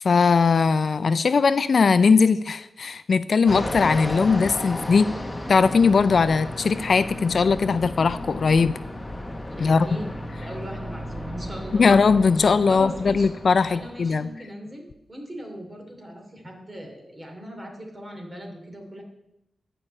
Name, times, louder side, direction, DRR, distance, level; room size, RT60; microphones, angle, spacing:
voice 1, 0.0-5.1 5.5-8.7 9.6-9.9 11.7-14.3, left 5 dB, 60° left, 13 dB, 0.4 m, -19 dB
Fixed-wing aircraft airplane, 3.5-14.3, left 1 dB, 15° left, 1.1 m, -34 dB
voice 2, 9.5-12.0 12.7-13.3 13.7-19.0, equal, 25° right, 2 dB, 2.7 m, -39 dB
11.0 x 5.5 x 8.7 m, 0.88 s
wide cardioid pair, 115°, 0 cm